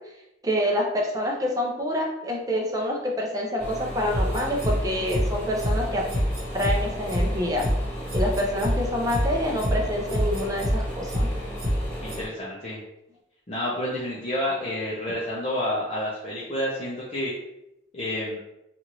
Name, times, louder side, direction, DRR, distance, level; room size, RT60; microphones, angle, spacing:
voice 1, 0.4-6.0 6.5-7.6 8.1-11.3, equal, 20° right, -1 dB, 0.5 m, -27 dB
sound 1, 3.6-12.3, equal, 10° left, 1.0 m, -35 dB
sound 2, 4.1-4.7 5.1-5.2 5.6-5.7 6.1-6.7 7.1-7.2 7.6-7.7 8.1-8.7 9.1-9.2 9.6-9.7 10.1-10.7 11.1-11.2 11.6-11.7 12.1-12.2, equal, 50° right, 1.0 m, -25 dB
voice 2, 12.0-12.8 13.5-17.3 17.9-18.4, left 1 dB, 35° left, -8 dB, 0.6 m, -29 dB
2.9 x 2.5 x 2.9 m, 0.86 s
head